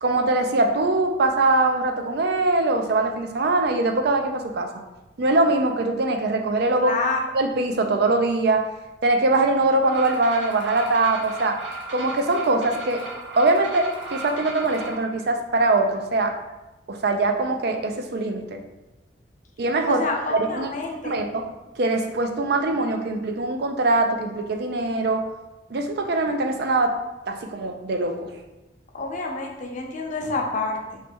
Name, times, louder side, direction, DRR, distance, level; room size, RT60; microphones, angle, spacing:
voice 1, 0.0-4.7 5.2-6.9 7.3-8.7 9.0-11.6 11.9-13.0 13.4-16.4 16.9-18.6 19.6-20.1 20.3-20.7 21.0-21.4 21.8-25.2 25.7-27.0 27.3-28.3, right 2 dB, 60° right, 5 dB, 0.5 m, -22 dB
voice 2, 6.8-7.2 19.9-21.1 28.9-31.0, left 3 dB, 45° left, 1 dB, 0.7 m, -28 dB
sound 1, 9.8-15.0, right 2 dB, 85° right, 1.0 m, -36 dB
3.2 x 3.1 x 4.4 m, 1.0 s
head